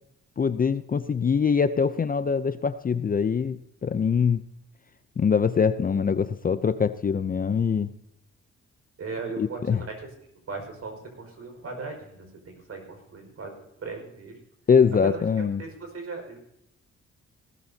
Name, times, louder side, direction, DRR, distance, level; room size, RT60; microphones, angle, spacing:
voice 1, 0.4-4.5 5.2-7.9 9.4-9.8 14.7-15.6, left 6 dB, 30° left, 13 dB, 0.6 m, -23 dB
voice 2, 9.0-10.1 10.5-13.5 13.8-14.3 15.0-15.2 15.6-16.4, right 4 dB, 55° right, 3 dB, 5.3 m, -37 dB
18.5 x 13.5 x 2.8 m, 0.78 s
cardioid pair, 90°, 30 cm